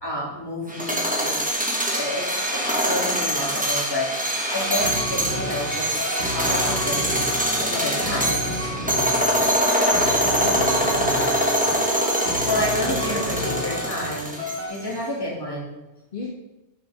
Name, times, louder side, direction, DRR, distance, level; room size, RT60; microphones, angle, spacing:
voice 1, 0.0-1.4 1.9-6.0 6.3-7.1 7.6-8.4 12.2-14.4 14.7-15.7, left 1 dB, 20° left, -5 dB, 2.7 m, -29 dB
sound 1, 0.7-14.8, equal, 5° right, 1.3 m, -24 dB
sound 2, 4.8-14.1 14.4-14.7, left 1 dB, 80° right, 3.3 m, -30 dB
voice 2, 10.4-11.0 13.1-13.8 16.1-16.3, left 3 dB, 50° left, -2 dB, 1.2 m, -34 dB
11.0 x 6.7 x 3.6 m, 1.0 s
omnidirectional pair, 1.2 m